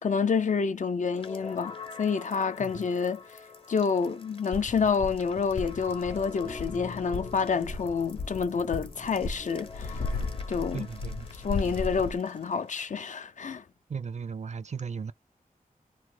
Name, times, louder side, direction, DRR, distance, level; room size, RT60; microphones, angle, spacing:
voice 1, 0.0-3.2 3.7-10.0 10.5-10.9 11.3-13.6, left 5 dB, 60° left, 0.4 m, -28 dB
sound 1, 1.1-13.0, left 4 dB, 40° left, 0.8 m, -45 dB
sound 2, 4.5-12.2, left 3 dB, 85° left, 0.8 m, -36 dB
voice 2, 10.7-11.3 13.9-15.1, right 6 dB, 50° right, 0.4 m, -36 dB
2.9 x 2.1 x 3.1 m
wide cardioid pair, 90°, 15 cm